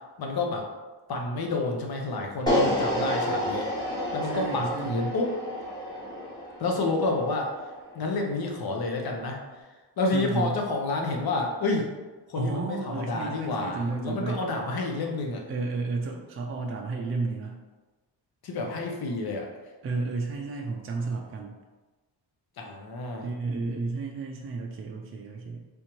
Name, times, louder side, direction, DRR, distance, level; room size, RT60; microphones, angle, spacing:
voice 1, 0.2-0.7 1.1-3.7 4.1-5.3 6.6-7.5 7.9-9.4 10.0-11.9 12.3-15.4 18.4-19.5 22.6-23.3, left 3 dB, 60° left, 1 dB, 0.8 m, -29 dB
sound 1, 2.5-8.6, equal, 10° left, 1.2 m, -30 dB
voice 2, 4.3-5.1 10.1-10.6 12.4-14.4 15.5-17.6 19.8-21.6 23.2-25.7, right 3 dB, 35° right, 0 dB, 0.4 m, -32 dB
3.5 x 2.7 x 3.0 m, 1.2 s
cardioid pair, 90°, 43 cm